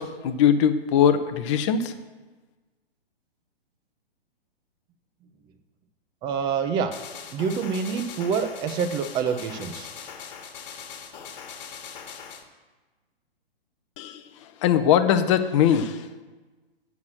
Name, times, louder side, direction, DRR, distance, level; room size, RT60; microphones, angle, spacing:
voice 1, 0.0-1.9 14.0-16.1, left 8 dB, 30° left, 8 dB, 0.6 m, -21 dB
voice 2, 6.2-6.9 7.3-9.9, right 6 dB, 15° right, 8 dB, 0.5 m, -26 dB
sound 1, 6.9-12.4, left 7 dB, 45° left, 1.4 m, -41 dB
9.6 x 5.9 x 6.1 m, 1.3 s
figure-of-eight pair, 120°, 30 cm